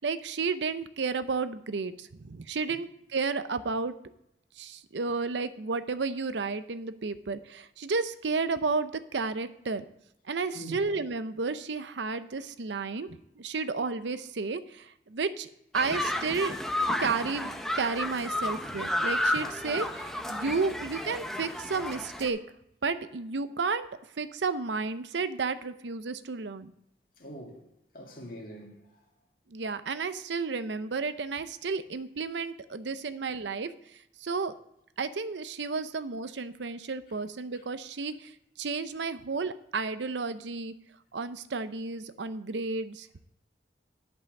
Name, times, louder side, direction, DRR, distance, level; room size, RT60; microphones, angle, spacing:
voice 1, 0.0-3.9 4.6-9.8 10.3-13.1 13.4-16.5 17.0-22.4 22.8-23.9 24.2-26.7 29.5-33.7 34.2-34.5 35.0-40.7 41.1-43.1, right 4 dB, 80° right, 0.6 m, -32 dB
sound 1, 15.7-22.3, left 1 dB, ahead, 0.7 m, -32 dB
voice 2, 27.2-27.6 27.9-28.8, right 1 dB, 50° left, 2.2 m, -43 dB
11.0 x 5.6 x 6.4 m
head